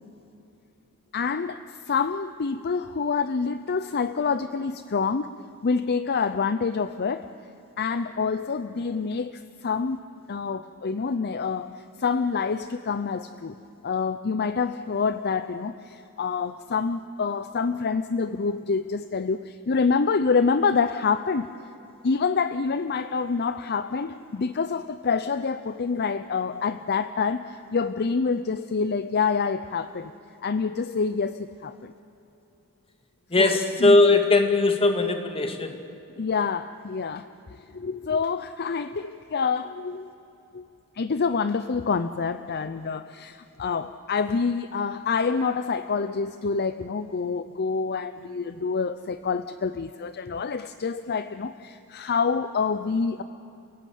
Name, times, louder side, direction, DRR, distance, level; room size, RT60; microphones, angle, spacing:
voice 1, 1.1-5.3 5.6-7.3 7.8-10.0 10.3-13.6 13.8-21.5 22.0-30.1 30.4-31.9 33.4-34.0 36.2-37.3 37.7-40.1 40.5-40.7 40.9-53.2, left 5 dB, 45° left, 12 dB, 0.6 m, -27 dB
voice 2, 33.3-35.8, left 2 dB, 25° left, 6 dB, 2.0 m, -20 dB
29.0 x 16.5 x 9.3 m, 2.9 s
head